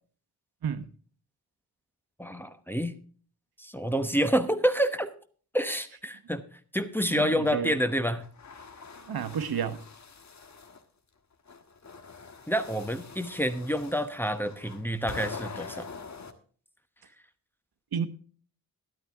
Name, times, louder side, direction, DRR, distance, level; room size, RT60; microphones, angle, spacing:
voice 1, 2.2-2.9 3.6-5.1 5.5-6.4 6.7-8.2 12.5-15.9, equal, 5° left, 1.0 m, -28 dB
voice 2, 7.1-7.8 9.1-9.9 17.9-18.1, right 7 dB, 70° right, 1.1 m, -31 dB
sound 1, 8.2-10.8 11.5-16.3, left 5 dB, 45° left, 1.4 m, -44 dB
12.5 x 12.5 x 3.5 m
wide cardioid pair, 105°, 38 cm